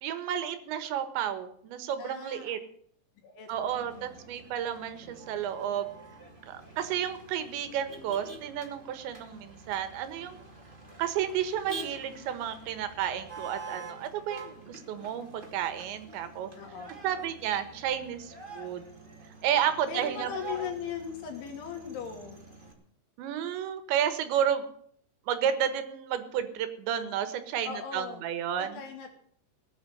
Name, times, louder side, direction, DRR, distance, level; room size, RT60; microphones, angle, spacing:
voice 1, 0.0-2.6 3.5-5.9 6.5-10.4 11.0-16.5 17.0-18.8 19.4-20.6 23.2-24.7 25.3-28.8, right 9 dB, 75° right, 11 dB, 3.6 m, -32 dB
voice 2, 2.0-2.6 3.2-4.1 16.6-17.0 19.9-22.4 27.7-28.2 28.6-29.1, left 7 dB, 90° left, 3 dB, 5.2 m, -39 dB
Motor vehicle (road), 3.5-22.7, right 2 dB, 15° right, 1.8 m, -47 dB
18.0 x 9.4 x 7.9 m, 0.63 s
omnidirectional pair, 5.3 m